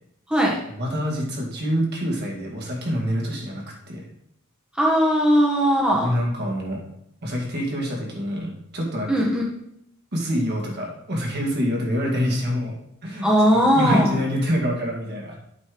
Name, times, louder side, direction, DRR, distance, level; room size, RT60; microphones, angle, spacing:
voice 1, 0.7-4.0 5.9-6.8 7.2-9.2 10.1-12.8 13.0-13.3 13.5-15.4, equal, 50° right, -1 dB, 2.1 m, -26 dB
voice 2, 4.7-6.1 9.1-9.4 13.2-14.1, equal, 5° right, -4 dB, 1.4 m, -19 dB
8.6 x 4.3 x 5.2 m, 0.76 s
head